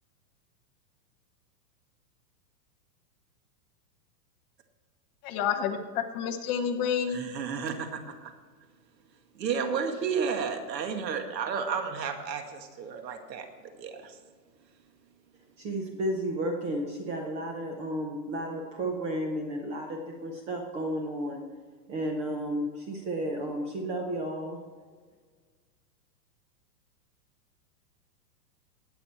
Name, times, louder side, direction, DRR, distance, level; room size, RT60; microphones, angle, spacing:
voice 1, 5.2-7.2, left 7 dB, 25° left, 5 dB, 0.9 m, -29 dB
voice 2, 7.1-8.3 9.4-13.5 13.8-14.2, right 6 dB, 80° right, 6 dB, 2.1 m, -32 dB
voice 3, 15.6-21.4 21.9-24.6, right 1 dB, 15° right, 2 dB, 0.6 m, -32 dB
19.0 x 7.1 x 4.4 m, 1.5 s
supercardioid pair, 160°, 50 cm